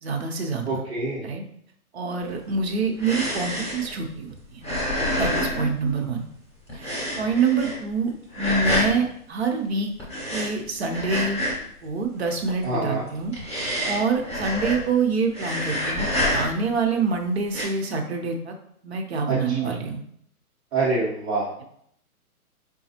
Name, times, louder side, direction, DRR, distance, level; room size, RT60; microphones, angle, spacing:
voice 1, 0.0-0.8 1.2-1.4 1.9-4.7 5.1-6.3 6.7-9.9 10.3-11.4 11.8-13.3 13.8-18.6 18.8-20.0, right 4 dB, 45° right, 2 dB, 0.7 m, -26 dB
voice 2, 0.6-1.3 12.6-13.0 19.3-19.7 20.7-21.5, right 3 dB, 25° right, -10 dB, 1.0 m, -26 dB
sound 1, 2.3-6.4 6.7-8.0 8.3-9.0 10.0-11.8 12.0-12.6 13.1-15.0 15.3-16.8 17.4-17.6, left 1 dB, 5° left, 0.6 m, -28 dB
4.9 x 2.3 x 2.8 m, 0.69 s
figure-of-eight pair, 130°, 45 cm